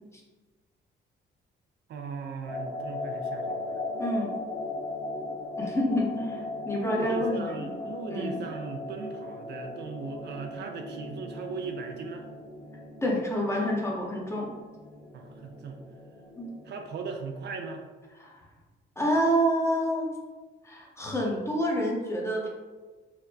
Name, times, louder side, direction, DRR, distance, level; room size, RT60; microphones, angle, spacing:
voice 1, 1.9-3.8 6.8-12.3 15.1-15.8 16.6-17.8, right 4 dB, 60° right, 3 dB, 0.4 m, -38 dB
sound 1, 2.4-16.7, left 2 dB, 45° left, 1.5 m, -38 dB
voice 2, 4.0-4.3 5.6-8.4 13.0-14.5 16.4-16.5 18.2-18.4 19.0-20.1 20.6-22.5, equal, 15° left, -2 dB, 0.7 m, -28 dB
4.1 x 2.0 x 2.7 m, 1.3 s
cardioid pair, 90°, 20 cm